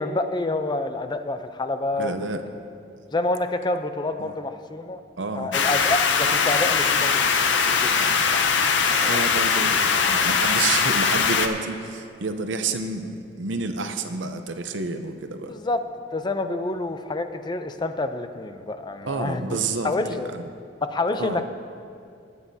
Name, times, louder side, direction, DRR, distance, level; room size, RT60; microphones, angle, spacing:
voice 1, 0.0-2.4 3.1-5.0 5.4-8.5 8.9-9.2 15.5-15.8 16.1-19.6 19.8-20.3 20.8-21.5, left 2 dB, 25° left, 8 dB, 0.5 m, -28 dB
voice 2, 2.0-2.4 4.2-4.3 5.2-5.5 8.0-8.3 9.0-15.5 19.0-20.4 21.2-21.4, right 3 dB, 85° right, 8 dB, 0.7 m, -30 dB
sound 1, 5.5-11.5, left 5 dB, 70° left, 0.7 m, -21 dB
20.0 x 9.4 x 2.8 m, 2.4 s
head